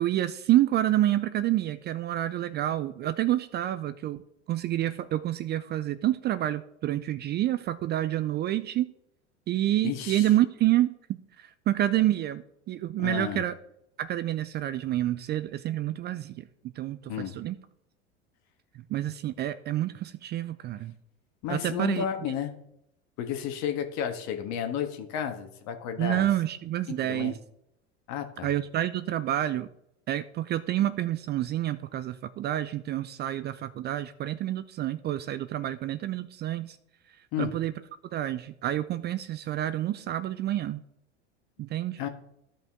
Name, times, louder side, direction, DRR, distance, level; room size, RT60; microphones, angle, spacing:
voice 1, 0.0-4.2 4.5-8.9 9.5-13.5 14.0-16.4 16.8-17.6 18.9-20.9 21.5-22.0 26.0-27.4 28.4-29.7 30.1-36.8 37.4-37.7 38.1-40.8 41.6-42.0, right 13 dB, 30° right, 12 dB, 0.4 m, -28 dB
voice 2, 9.8-10.3 13.0-13.4 17.1-17.4 21.4-22.5 23.2-26.3 26.9-27.3 28.1-28.5 37.3-37.6 42.0-42.1, left 9 dB, 50° left, 6 dB, 1.6 m, -32 dB
13.5 x 5.4 x 3.6 m, 0.78 s
hypercardioid pair, 90°, 35 cm